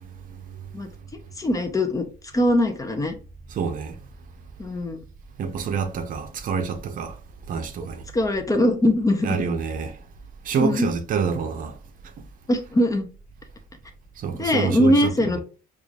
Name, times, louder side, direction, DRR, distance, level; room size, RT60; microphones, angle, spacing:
voice 1, 0.7-2.1 2.3-3.1 4.6-5.0 8.1-9.4 10.6-10.9 12.5-13.1 14.3-15.4, left 1 dB, 20° left, 0.6 m, -22 dB
voice 2, 3.5-4.0 5.4-7.2 7.5-8.0 9.2-10.0 10.4-11.7 14.2-15.4, right 6 dB, 55° right, 0.6 m, -27 dB
4.9 x 2.4 x 2.4 m
cardioid pair, 110°, 17 cm